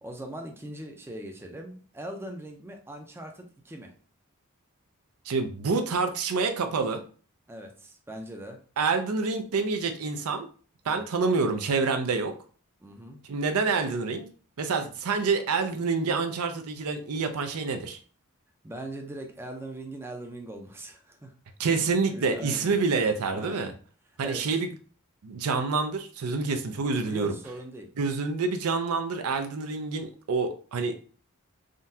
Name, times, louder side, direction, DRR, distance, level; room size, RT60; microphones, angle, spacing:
voice 1, 0.0-3.9 7.5-8.6 10.9-11.1 12.8-13.2 18.6-21.3 21.6-22.8 23.3-23.7 24.2-24.6 27.1-27.9, right 1 dB, 10° right, 3 dB, 0.5 m, -41 dB
voice 2, 5.3-7.0 8.8-10.5 10.8-12.3 13.3-14.3 14.6-18.0 21.6-23.7 24.2-24.7 25.2-27.3 28.0-31.0, right 4 dB, 70° right, 8 dB, 0.5 m, -27 dB
3.7 x 2.2 x 2.7 m, 0.41 s
head